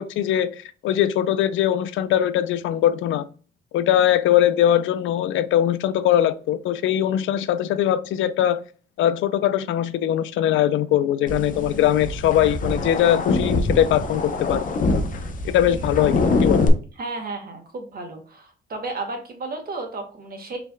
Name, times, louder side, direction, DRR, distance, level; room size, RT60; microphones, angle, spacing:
voice 1, 0.0-3.2 3.7-8.6 9.0-14.6 15.5-16.7, left 11 dB, 80° left, 0.4 m, -21 dB
sound 1, 11.3-16.7, left 3 dB, 40° left, 0.7 m, -24 dB
voice 2, 17.0-20.6, right 3 dB, 50° right, 1.5 m, -33 dB
5.1 x 3.4 x 2.2 m
cardioid pair, 90°, 20 cm